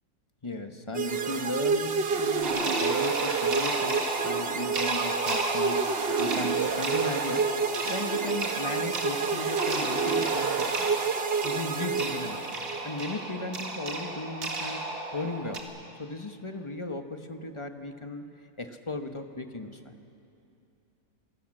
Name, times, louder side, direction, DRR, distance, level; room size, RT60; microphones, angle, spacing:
voice 1, 0.4-10.9 11.4-12.6 12.8-15.7 16.0-18.2 18.6-19.9, left 2 dB, 25° left, 6 dB, 1.0 m, -36 dB
sound 1, 0.9-12.8, right 5 dB, 45° right, 1.1 m, -29 dB
sound 2, 2.4-15.6, right 2 dB, 65° right, 2.5 m, -33 dB
26.0 x 18.0 x 7.6 m, 2.7 s
omnidirectional pair, 1.6 m